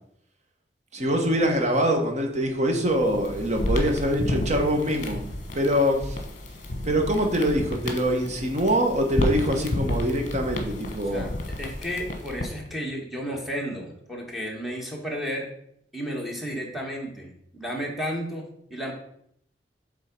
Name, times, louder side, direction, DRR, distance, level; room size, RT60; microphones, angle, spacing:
voice 1, 0.9-5.2 5.5-6.2 6.8-11.3, equal, 40° right, 3 dB, 1.2 m, -24 dB
sound 1, 2.9-12.7, left 1 dB, 45° left, 1.2 m, -31 dB
voice 2, 11.6-15.5 15.9-18.4 18.7-18.9, equal, ahead, -1 dB, 1.5 m, -32 dB
7.6 x 3.7 x 5.3 m, 0.71 s
head